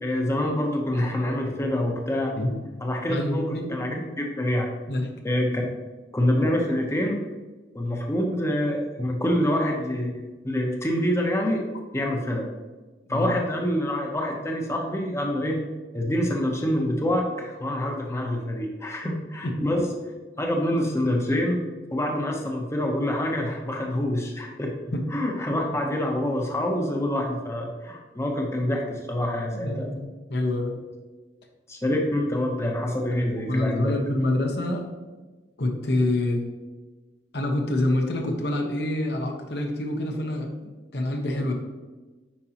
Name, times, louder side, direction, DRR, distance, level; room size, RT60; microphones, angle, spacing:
voice 1, 0.0-2.3 2.8-3.9 4.2-4.7 5.2-5.7 6.1-7.2 7.7-11.6 11.9-12.4 13.1-15.6 15.9-19.9 20.4-21.6 21.9-24.7 25.1-29.9 31.7-33.9, left 1 dB, 15° left, 1 dB, 0.8 m, -26 dB
voice 2, 3.1-4.0 4.9-5.1 13.1-13.3 19.4-19.7 24.9-25.0 25.7-25.8 29.5-30.0 30.3-30.7 33.4-34.9 35.6-36.4 37.3-41.5, left 1 dB, 65° left, 2 dB, 1.1 m, -26 dB
8.7 x 5.2 x 2.9 m, 1.2 s
head